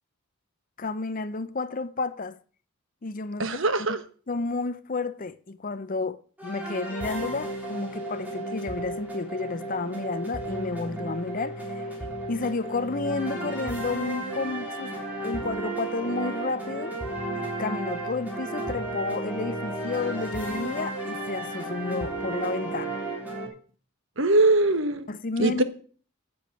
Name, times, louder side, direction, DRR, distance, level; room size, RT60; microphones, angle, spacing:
voice 1, 0.8-2.4 3.0-3.6 3.9-4.0 4.3-12.0 12.3-17.0 17.3-23.0 25.1-25.6, left 3 dB, 40° left, 0.6 m, -31 dB
voice 2, 3.4-4.0 24.2-25.0 25.4-25.6, right 2 dB, 60° right, 1.2 m, -21 dB
sound 1, 6.4-23.5, right 2 dB, 10° right, 3.2 m, -33 dB
10.5 x 7.0 x 7.7 m
head